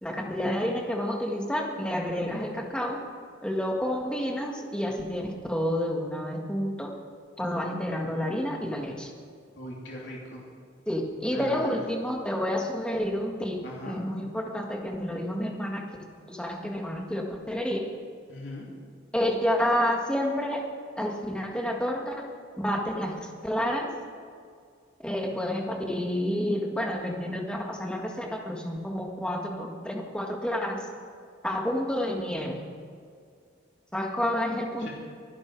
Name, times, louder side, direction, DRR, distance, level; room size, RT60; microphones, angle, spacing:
voice 1, 0.0-3.0 3.4-6.9 7.4-9.1 10.9-15.9 16.3-17.9 19.1-20.7 21.0-22.3 22.6-23.9 25.0-30.9 31.4-32.6 33.9-34.9, equal, 5° left, 0 dB, 1.8 m, -29 dB
voice 2, 9.6-10.4 11.3-11.7 13.6-14.0 18.3-18.7 34.8-34.9, left 1 dB, 65° left, -3 dB, 3.1 m, -38 dB
23.5 x 11.5 x 4.8 m, 2.2 s
head